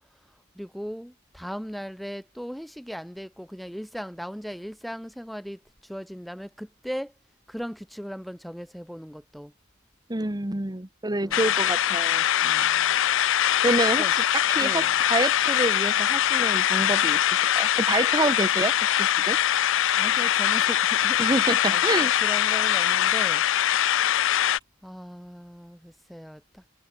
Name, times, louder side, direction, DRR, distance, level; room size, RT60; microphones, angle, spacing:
voice 1, 0.5-7.1 7.5-9.5 11.2-11.4 12.4-13.0 14.0-14.1 14.6-14.9 19.9-23.4 24.8-26.6, equal, ahead, 1.6 m, -38 dB
voice 2, 10.1-12.3 13.6-14.2 14.5-19.4 21.2-22.1, right 2 dB, 20° right, 1.3 m, -27 dB
sound 1, 11.3-24.6, left 11 dB, 65° left, 0.6 m, -22 dB
head